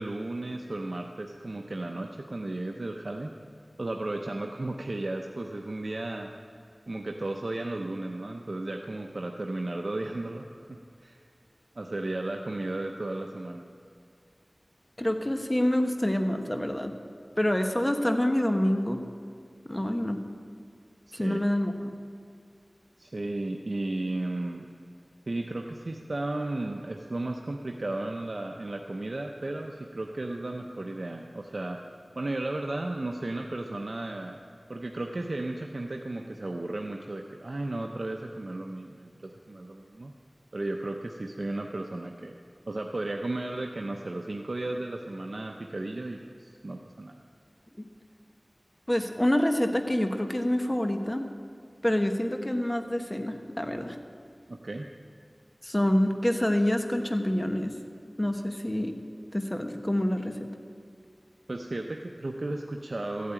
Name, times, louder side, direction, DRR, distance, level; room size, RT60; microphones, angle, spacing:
voice 1, 0.0-3.3 3.8-6.3 6.9-11.2 11.8-13.7 21.1-21.4 23.0-24.7 25.3-31.8 32.2-34.4 34.7-40.1 40.5-42.4 42.7-47.2 54.5-54.9 61.5-63.3, right 2 dB, 70° right, 2 dB, 0.7 m, -34 dB
voice 2, 15.0-16.9 17.4-19.0 19.6-20.2 21.1-21.9 47.8-47.9 48.9-51.3 51.8-54.0 55.6-57.7 58.2-58.9 59.3-60.5, left 1 dB, 20° left, 5 dB, 1.3 m, -27 dB
14.0 x 8.6 x 8.8 m, 2.3 s
wide cardioid pair, 45°, 0 cm